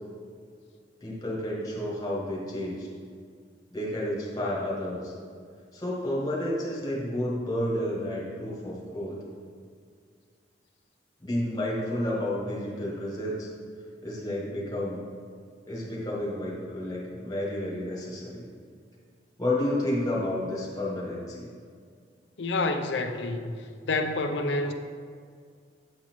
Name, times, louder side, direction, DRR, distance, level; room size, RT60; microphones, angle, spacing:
voice 1, 1.0-2.9 3.7-5.1 5.7-9.2 11.2-13.5 14.0-15.0 15.7-18.5 19.4-21.5, left 1 dB, 20° left, -5 dB, 1.6 m, -31 dB
voice 2, 22.4-24.7, left 2 dB, 75° left, 7 dB, 0.5 m, -28 dB
8.7 x 4.2 x 4.4 m, 2.1 s
head